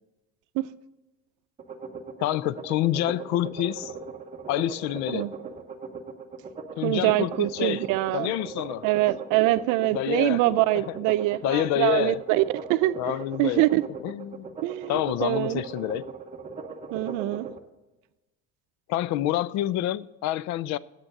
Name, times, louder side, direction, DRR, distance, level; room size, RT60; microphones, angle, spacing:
sound 1, 1.6-17.6, right 5 dB, 25° right, 0.8 m, -39 dB
voice 1, 2.2-3.9 4.5-5.3 6.8-7.8 8.1-8.9 9.9-10.4 10.7-11.0 11.4-12.2 13.0-13.7 14.0-14.5 14.9-16.1 18.9-20.8, left 13 dB, 60° left, 0.4 m, -27 dB
voice 2, 6.8-8.3 8.8-12.4 12.7-13.8 14.6-15.6 16.9-17.5, right 16 dB, 75° right, 0.6 m, -24 dB
8.8 x 7.6 x 6.5 m
cardioid pair, 140°, 31 cm